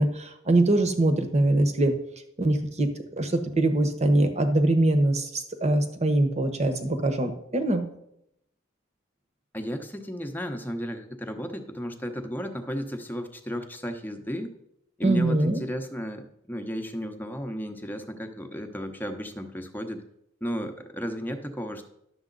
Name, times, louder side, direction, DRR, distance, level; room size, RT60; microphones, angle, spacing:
voice 1, 0.0-1.9 2.4-2.9 3.2-7.8 15.0-15.6, right 1 dB, 35° right, 7 dB, 1.1 m, -23 dB
voice 2, 9.5-14.5 15.0-20.0 20.4-21.9, equal, 10° left, 5 dB, 0.9 m, -34 dB
11.0 x 7.0 x 4.0 m, 0.78 s
head